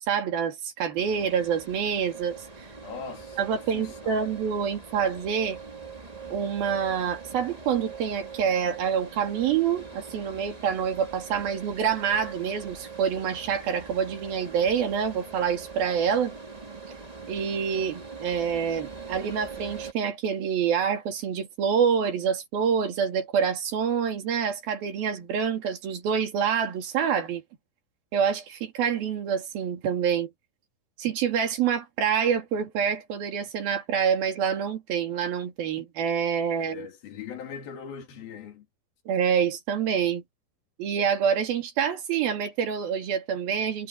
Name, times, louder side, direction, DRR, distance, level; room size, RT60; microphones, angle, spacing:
voice 1, 0.1-2.4 3.4-5.6 6.3-16.3 17.3-27.4 28.1-30.3 31.0-36.9 39.1-40.2 40.8-43.9, right 7 dB, 80° right, 4.5 m, -27 dB
sound 1, 1.0-19.9, right 4 dB, 20° right, 1.0 m, -42 dB
voice 2, 2.8-3.4 3.7-4.2 36.6-38.7, left 6 dB, 85° left, 4.4 m, -40 dB
omnidirectional pair, 4.2 m